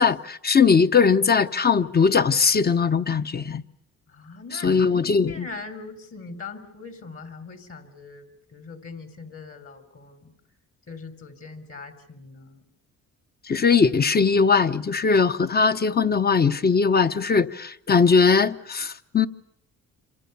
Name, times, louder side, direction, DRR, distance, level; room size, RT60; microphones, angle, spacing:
voice 1, 0.0-3.6 4.5-5.5 13.5-19.3, left 5 dB, 30° left, 1.0 m, -20 dB
voice 2, 4.1-4.7 5.3-10.3 10.9-12.6, left 4 dB, 50° left, 3.9 m, -41 dB
27.5 x 26.0 x 7.0 m
cardioid pair, 90°, 30 cm